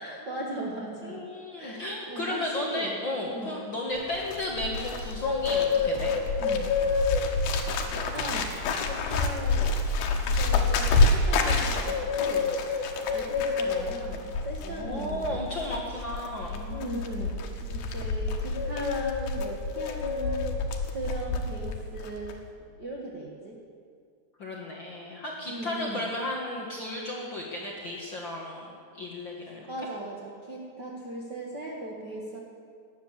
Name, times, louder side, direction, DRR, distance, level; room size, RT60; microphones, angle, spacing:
voice 1, 0.0-1.2 1.6-3.0 3.3-3.6 6.4-6.7 7.3-7.5 7.9-8.5 8.9-9.7 10.3-12.5 13.1-15.4 16.7-20.5 20.9-22.4 22.8-23.6 25.5-26.1 29.7-32.4, right 1 dB, 45° right, -3 dB, 1.5 m, -38 dB
voice 2, 1.0-6.1 14.6-17.0 24.4-29.7, left 1 dB, 45° left, -2 dB, 1.7 m, -34 dB
Bird, 4.0-21.8 22.0-22.4, left 4 dB, 90° left, 3.1 m, -27 dB
18.5 x 10.5 x 7.4 m, 2.2 s
omnidirectional pair, 4.2 m